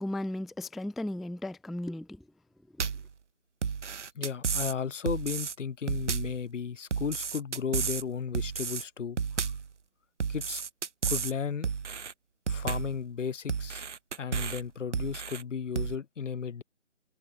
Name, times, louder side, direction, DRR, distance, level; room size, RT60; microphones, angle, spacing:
voice 1, 0.0-2.3, left 1 dB, ahead, 0.3 m, -35 dB
sound 1, 2.8-3.1 3.6-4.8 5.1-5.5 5.9-6.4 6.9-8.0 8.3-8.8 9.2-9.7 10.2-11.3 11.6-12.1 12.5-13.0 13.5-14.6 14.9-15.4 15.8-16.0, right 6 dB, 70° right, 1.0 m, -32 dB
voice 2, 4.2-9.2 10.3-10.6 11.1-11.7 12.5-13.8 14.2-16.6, left 6 dB, 80° left, 0.8 m, -34 dB
hypercardioid pair, 180°, 37 cm